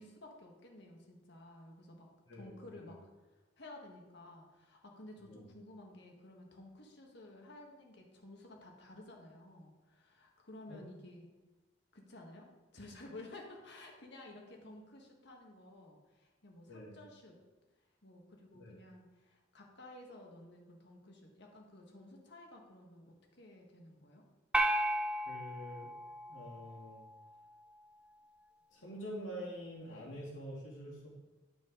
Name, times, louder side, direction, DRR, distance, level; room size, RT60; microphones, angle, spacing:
voice 1, 0.0-3.0 3.6-11.3 11.9-17.3 18.0-24.2, left 1 dB, 60° left, 1 dB, 1.5 m, -53 dB
voice 2, 2.2-2.9 5.3-5.4 10.7-10.8 16.7-17.0 18.5-18.8 25.3-25.9 26.3-27.0 28.7-31.1, equal, 85° left, -8 dB, 2.6 m, -46 dB
sound 1, 24.5-27.0, right 1 dB, 5° right, 0.3 m, -34 dB
11.0 x 5.3 x 3.8 m, 1.2 s
head